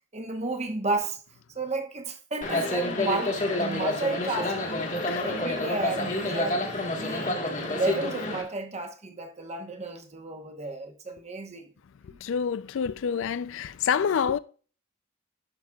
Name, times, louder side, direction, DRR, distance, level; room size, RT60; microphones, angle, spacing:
voice 1, 0.1-1.2 1.5-6.7 7.0-11.7 12.1-12.2, right 3 dB, 35° right, 1.0 m, -33 dB
sound 1, 2.4-8.4, left 1 dB, 40° left, 1.4 m, -28 dB
voice 2, 12.0-14.4, left 7 dB, 65° left, 0.4 m, -28 dB
11.0 x 6.0 x 2.3 m
head